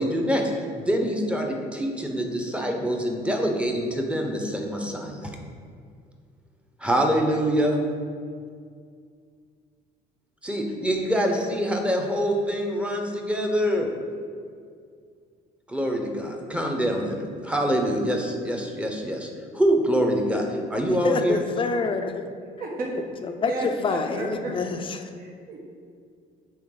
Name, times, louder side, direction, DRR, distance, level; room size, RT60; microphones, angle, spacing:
voice 1, 0.0-5.3 6.8-7.8 10.4-13.9 15.7-19.3 19.5-21.4, equal, 5° right, 2 dB, 0.8 m, -25 dB
voice 2, 20.9-22.3 23.2-25.1, left 4 dB, 30° left, 7 dB, 0.5 m, -27 dB
voice 3, 23.4-24.5 25.2-25.7, right 2 dB, 60° right, -2 dB, 1.3 m, -32 dB
8.6 x 3.5 x 3.9 m, 2.2 s
cardioid pair, 110°, 17 cm